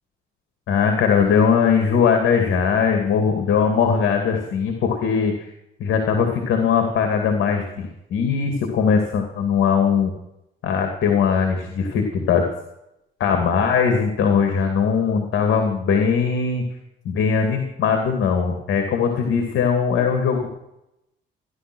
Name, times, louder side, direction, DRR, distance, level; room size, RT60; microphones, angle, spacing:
voice 1, 0.7-5.5 5.8-10.1 10.6-12.4 13.2-16.6 17.0-20.5, left 6 dB, 80° left, 4 dB, 2.5 m, -20 dB
15.5 x 11.5 x 6.3 m, 0.85 s
cardioid pair, 90°, 20 cm